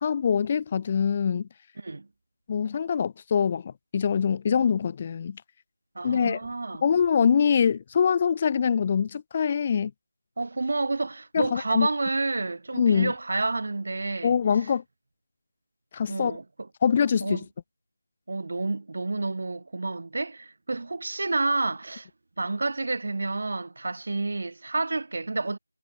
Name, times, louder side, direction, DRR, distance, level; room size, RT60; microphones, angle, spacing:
voice 1, 0.0-1.5 2.5-5.4 6.0-6.4 6.8-9.9 11.3-11.9 12.7-13.1 14.2-14.8 15.9-16.4 16.8-17.4, left 7 dB, 20° left, 2.0 m, -24 dB
voice 2, 1.8-2.1 6.0-6.8 10.4-14.4 16.1-16.4 17.2-17.4 18.3-22.1 22.4-25.6, right 3 dB, 45° right, 2.2 m, -29 dB
figure-of-eight pair, 170°, 0 cm